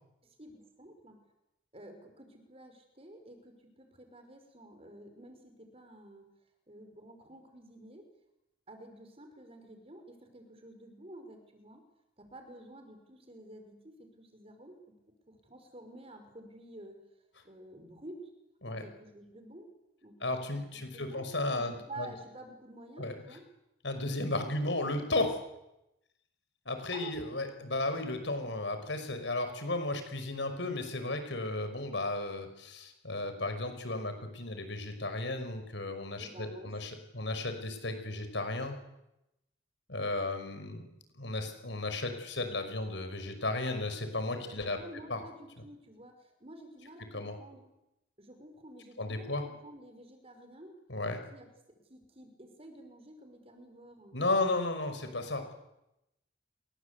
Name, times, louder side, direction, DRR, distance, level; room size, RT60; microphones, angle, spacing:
voice 1, 0.2-1.2 1.7-6.3 6.7-8.1 8.7-11.8 12.2-14.7 15.3-17.0 17.4-18.3 18.7-19.7 20.0-20.5 20.9-21.3 21.5-23.4 26.9-27.1 36.2-36.9 44.4-47.7 48.2-50.8 51.3-51.5 51.9-54.2, right 1 dB, 30° right, 6 dB, 5.4 m, -50 dB
voice 2, 20.2-22.1 23.0-23.2 23.8-25.4 26.7-38.8 39.9-40.9 41.2-44.8 45.1-45.2 47.1-47.3 49.0-49.4 50.9-51.2 54.1-55.5, left 2 dB, 70° left, 8 dB, 5.4 m, -34 dB
29.0 x 23.0 x 8.3 m, 0.89 s
head